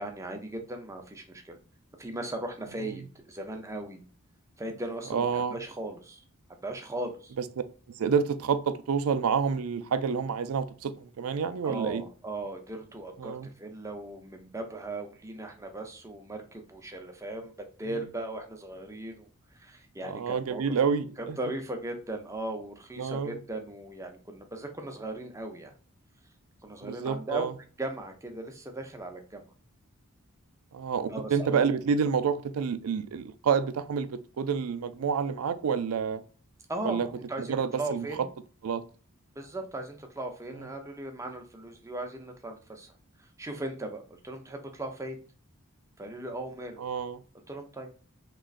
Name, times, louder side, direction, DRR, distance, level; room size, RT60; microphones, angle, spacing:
voice 1, 0.0-1.6 2.0-4.0 4.6-6.2 6.6-7.3 11.6-17.5 17.8-19.3 19.5-20.6 21.2-25.7 26.6-27.5 27.8-29.4 31.1-31.4 36.7-38.3 39.4-42.9 43.4-45.2 46.0-46.8 47.5-47.9, right 2 dB, 15° right, 0.5 m, -38 dB
voice 2, 5.1-5.6 8.0-12.0 13.2-13.5 20.0-21.4 23.0-23.4 26.8-27.5 30.7-36.2 36.8-37.1 37.4-38.1 38.6-38.8 46.8-47.2, right 6 dB, 75° right, 0.4 m, -28 dB
3.7 x 3.0 x 2.4 m
head